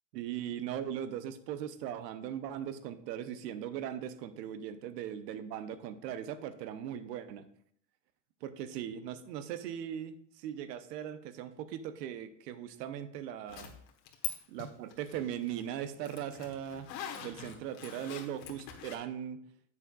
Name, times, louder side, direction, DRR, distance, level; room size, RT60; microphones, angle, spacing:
voice 1, 0.1-7.4 8.4-13.7 14.5-16.9 17.1-19.4, right 10 dB, 80° right, 12 dB, 0.9 m, -39 dB
Zipper (clothing), 13.5-14.3 14.6-19.0, left 9 dB, 80° left, 1.4 m, -43 dB
9.7 x 7.4 x 2.4 m, 0.65 s
supercardioid pair, 110°, 49 cm